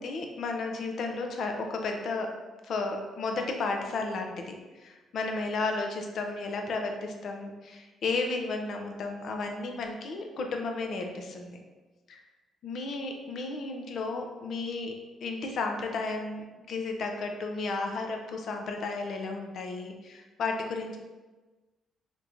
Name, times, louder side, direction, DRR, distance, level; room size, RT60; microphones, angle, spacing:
voice 1, 0.0-2.4 2.6-4.5 4.8-11.6 12.1-12.2 12.6-15.0 15.2-21.0, left 3 dB, 65° left, 3 dB, 0.5 m, -33 dB
3.6 x 2.9 x 2.5 m, 1.2 s
cardioid pair, 80°, 0 cm